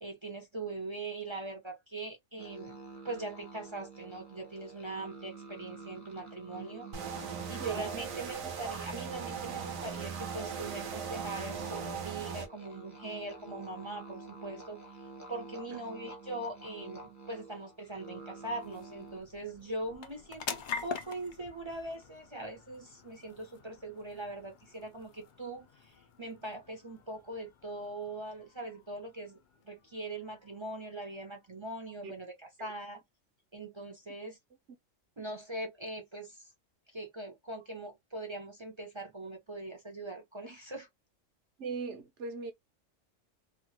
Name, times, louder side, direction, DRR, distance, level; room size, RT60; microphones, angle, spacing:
voice 1, 0.0-2.8 3.0-14.8 15.3-29.4 29.6-32.3 32.6-33.0 33.5-34.4 35.2-36.5 36.9-40.9, right 2 dB, 30° right, 0.5 m, -41 dB
sound 1, 2.4-19.2, right 3 dB, 15° left, 0.7 m, -48 dB
sound 2, 6.9-12.5, right 7 dB, 90° right, 1.2 m, -39 dB
voice 2, 7.6-7.9 15.7-15.8 32.0-32.1 32.6-32.7 41.6-42.5, right 4 dB, 65° right, 1.1 m, -39 dB
sound 3, 17.0-31.9, left 6 dB, 60° left, 0.5 m, -47 dB
2.9 x 2.4 x 2.8 m
omnidirectional pair, 1.3 m